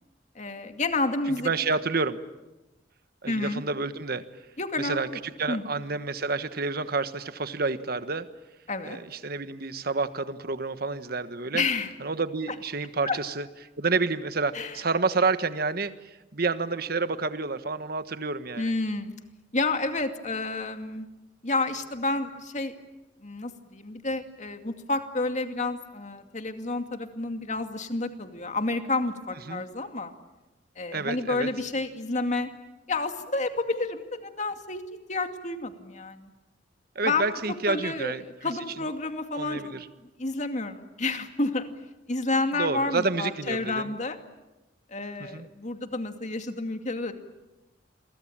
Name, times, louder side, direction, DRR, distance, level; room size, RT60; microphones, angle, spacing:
voice 1, 0.4-1.5 3.3-3.6 4.6-5.2 5.5-5.7 8.7-9.0 11.5-11.9 13.1-13.2 14.5-14.8 18.6-19.1 19.5-21.1 21.4-22.7 23.2-30.1 30.8-32.5 32.9-34.8 35.1-36.3 37.0-37.3 37.7-39.7 40.2-41.7 42.1-44.2 44.9-47.1, left 3 dB, 45° left, 7 dB, 2.4 m, -30 dB
voice 2, 1.4-2.2 3.2-4.2 4.8-8.3 8.8-11.6 12.0-13.5 13.8-18.7 29.5-29.6 30.9-31.5 36.9-38.5 39.3-39.9 42.6-43.9 45.2-45.5, right 4 dB, 60° right, 11 dB, 1.4 m, -29 dB
29.0 x 23.5 x 8.8 m, 1.0 s
head